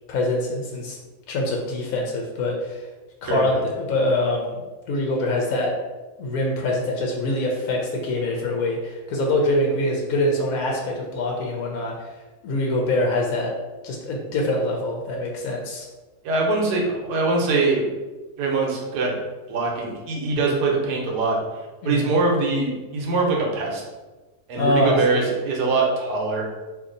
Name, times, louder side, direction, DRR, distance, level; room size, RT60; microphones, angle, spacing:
voice 1, 0.1-1.0 1.3-2.9 3.2-4.6 4.9-5.7 6.2-13.5 13.8-15.9 21.8-22.1 24.6-25.2, left 1 dB, 70° left, 0 dB, 0.9 m, -24 dB
voice 2, 3.2-3.6 16.2-17.9 18.4-19.2 19.5-21.4 21.8-23.8 24.5-26.4, right 3 dB, 80° right, -1 dB, 1.3 m, -23 dB
2.7 x 2.6 x 3.7 m, 1.2 s
omnidirectional pair, 1.7 m